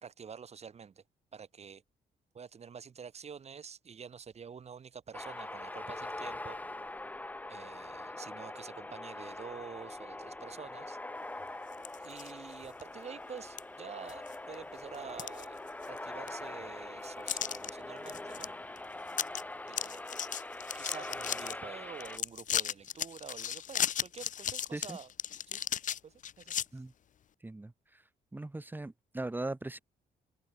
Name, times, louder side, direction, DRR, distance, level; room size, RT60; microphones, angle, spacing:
voice 1, 0.0-1.0 1.3-1.8 2.3-6.6 7.5-11.0 12.0-15.6 15.9-18.5 19.7-20.0 20.7-25.1 25.5-25.6 26.0-26.8, right 6 dB, 40° right, 5.0 m, -48 dB
sound 1, 5.1-22.2, left 2 dB, 10° left, 0.9 m, -43 dB
sound 2, 11.7-12.3 12.8-12.9 13.6-13.7 14.1-14.5 14.9-16.0 16.3-16.4 17.3-17.7 18.1-18.5 18.8-18.9 19.1-19.4 19.7-21.5 22.0-26.6, left 9 dB, 50° left, 0.8 m, -35 dB
voice 2, 27.4-28.0 28.3-29.8, right 2 dB, 10° right, 1.4 m, -39 dB
cardioid pair, 135°, 17 cm